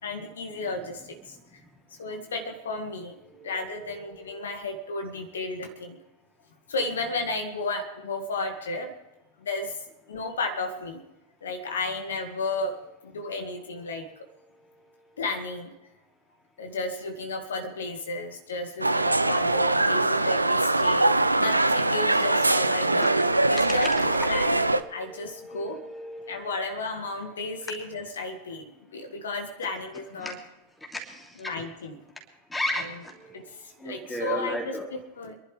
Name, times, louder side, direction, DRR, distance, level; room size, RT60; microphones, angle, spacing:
voice 1, 0.0-1.4 2.0-3.2 3.4-6.0 6.7-8.9 9.4-9.7 10.1-11.0 11.4-12.7 13.0-14.2 15.2-15.7 16.6-21.1 21.4-23.1 23.5-24.6 24.9-25.8 26.3-28.6 28.9-30.4 31.4-32.0 33.3-35.4, left 2 dB, 65° left, 5 dB, 1.8 m, -33 dB
voice 2, 3.2-4.5 23.0-23.4 24.1-26.5 30.2-30.3 30.9-31.5 32.5-33.5 33.8-34.9, left 1 dB, 5° left, 0 dB, 3.0 m, -36 dB
sound 1, 18.8-24.8, right 2 dB, 85° right, 0.5 m, -22 dB
26.5 x 11.5 x 3.4 m, 0.97 s
figure-of-eight pair, 90°, 0 cm